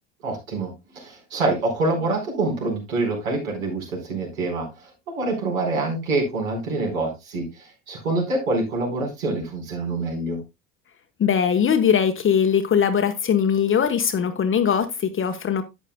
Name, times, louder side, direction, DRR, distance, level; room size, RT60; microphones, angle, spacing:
voice 1, 0.2-10.4, right 2 dB, 75° right, 4.5 m, -26 dB
voice 2, 11.2-15.6, left 7 dB, 30° left, 1.1 m, -20 dB
11.5 x 8.9 x 2.2 m
figure-of-eight pair, 65°, 42 cm